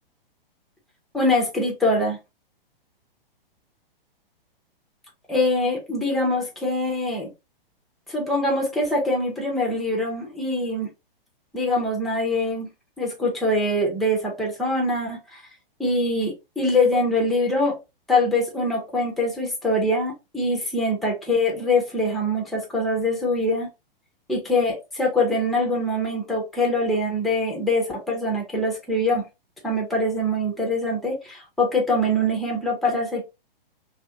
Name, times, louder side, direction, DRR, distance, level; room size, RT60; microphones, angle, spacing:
voice 1, 1.1-2.2 5.3-7.3 8.1-10.9 11.5-12.7 13.0-15.4 15.8-17.8 18.1-23.7 24.3-29.2 29.6-33.2, left 1 dB, ahead, 0.6 m, -23 dB
2.6 x 2.5 x 2.7 m
hypercardioid pair, 135°, 29 cm